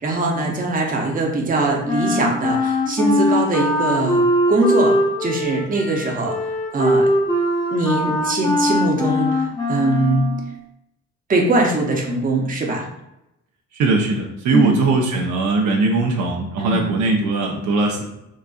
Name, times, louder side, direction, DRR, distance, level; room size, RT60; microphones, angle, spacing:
voice 1, 0.0-4.2 4.5-7.1 7.7-10.3 11.3-12.9 14.5-14.8 16.6-16.9, right 2 dB, 30° right, 0 dB, 0.7 m, -21 dB
Wind instrument woodwind instrument, 1.9-10.5, left 1 dB, 15° left, 0.8 m, -21 dB
voice 2, 13.8-18.0, right 3 dB, 75° right, 1 dB, 0.7 m, -20 dB
4.0 x 2.4 x 2.3 m, 0.87 s
cardioid pair, 90°, 30 cm